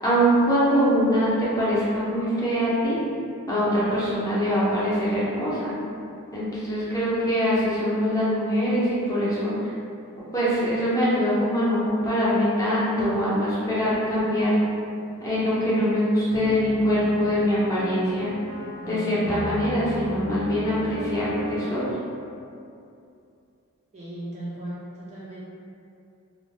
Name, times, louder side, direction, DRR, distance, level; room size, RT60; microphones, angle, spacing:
voice 1, 0.0-3.0 3.5-5.7 6.3-9.7 10.3-14.5 15.2-18.3 18.9-21.9, equal, 15° left, -10 dB, 0.7 m, -23 dB
sound 1, 10.1-21.9, equal, 80° right, 0.6 m, -38 dB
voice 2, 23.9-25.4, right 1 dB, 30° right, -8 dB, 0.4 m, -36 dB
2.5 x 2.0 x 3.3 m, 2.6 s
head